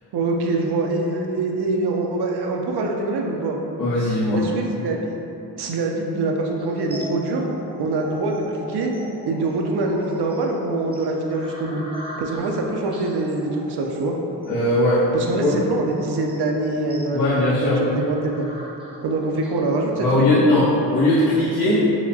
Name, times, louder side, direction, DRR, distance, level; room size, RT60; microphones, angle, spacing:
voice 1, 0.1-3.6 4.3-5.1 5.6-7.4 7.8-8.9 9.2-11.8 12.2-14.1 15.1-18.5 19.0-20.6, right 2 dB, 65° right, 1 dB, 0.5 m, -24 dB
voice 2, 3.8-4.4 14.5-15.0 15.4-15.5 17.1-17.8 20.0-21.8, left 1 dB, 60° left, -11 dB, 0.9 m, -19 dB
sound 1, 6.6-19.6, equal, 15° right, 0.6 m, -40 dB
4.7 x 2.1 x 2.6 m, 3.0 s
cardioid pair, 105°, 43 cm